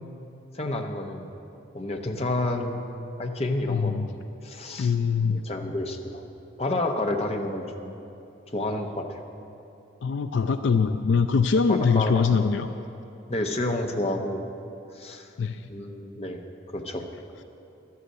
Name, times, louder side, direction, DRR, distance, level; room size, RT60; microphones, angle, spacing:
voice 1, 0.5-1.3 1.7-2.8 3.2-4.2 4.4-4.9 5.3-6.2 6.6-7.9 8.5-9.2 11.7-12.3 13.3-14.4 14.9-15.3 15.7-16.4 16.7-17.1, left 2 dB, 30° left, 3 dB, 0.9 m, -29 dB
voice 2, 3.7-4.1 4.8-5.4 10.0-12.7 15.4-15.6, left 5 dB, 70° left, 9 dB, 0.4 m, -23 dB
12.5 x 8.4 x 7.6 m, 2.8 s
head